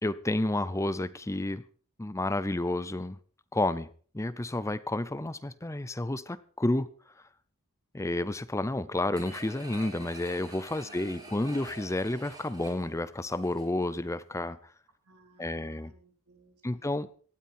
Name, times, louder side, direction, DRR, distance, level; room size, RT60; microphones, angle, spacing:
voice 1, 0.0-1.6 2.0-3.2 3.5-3.9 4.1-6.9 7.9-14.7 15.4-15.9 16.6-17.1, left 2 dB, 15° left, 15 dB, 0.6 m, -30 dB
sound 1, 9.1-13.9 14.3-14.4, right 2 dB, 20° right, 3.7 m, -47 dB
voice 2, 10.8-11.4 15.0-16.9, right 1 dB, 85° right, 4 dB, 3.8 m, -60 dB
18.0 x 13.0 x 4.4 m, 0.42 s
head